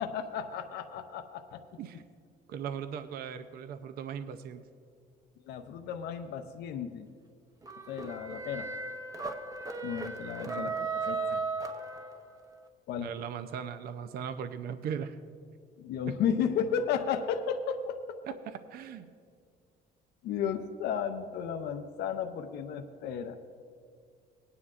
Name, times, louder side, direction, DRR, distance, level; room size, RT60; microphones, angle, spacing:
voice 1, 0.0-1.6 5.4-7.1 7.9-8.7 9.8-11.4 12.9-13.1 15.8-18.2 20.2-23.4, left 7 dB, 75° left, 6 dB, 0.6 m, -33 dB
voice 2, 2.5-4.6 10.4-10.7 13.0-15.2 18.3-19.1, right 8 dB, 65° right, 9 dB, 0.5 m, -38 dB
sound 1, 7.6-12.5, right 4 dB, 20° right, 0.8 m, -36 dB
19.0 x 9.7 x 2.4 m, 2.2 s
cardioid pair, 110°, 17 cm